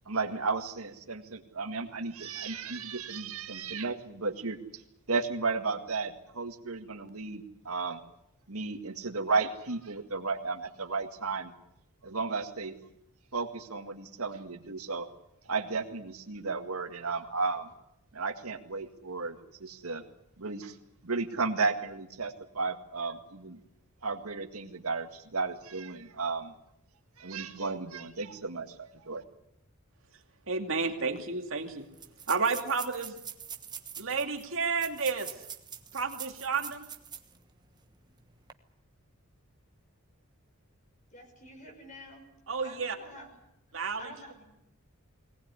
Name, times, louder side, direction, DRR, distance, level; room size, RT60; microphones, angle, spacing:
voice 1, 0.1-4.8 5.1-8.0 8.5-11.5 12.0-12.8 13.3-15.1 15.5-17.7 18.1-20.0 20.4-20.8 21.0-23.6 24.0-26.5 27.2-29.2, right 4 dB, 85° right, 6 dB, 1.9 m, -34 dB
voice 2, 30.5-31.9 32.3-33.1 34.0-35.3 35.9-36.9 42.5-43.0 43.7-44.1, right 4 dB, 65° right, 4 dB, 2.5 m, -31 dB
sound 1, 30.9-31.0 31.2-31.3 31.9-37.4 37.8-37.9 38.4-38.5, right 8 dB, 20° right, 1.2 m, -44 dB
voice 3, 41.1-42.3 42.6-43.3 44.0-44.4, equal, 35° left, 4 dB, 5.9 m, -48 dB
21.5 x 19.0 x 9.7 m, 0.80 s
head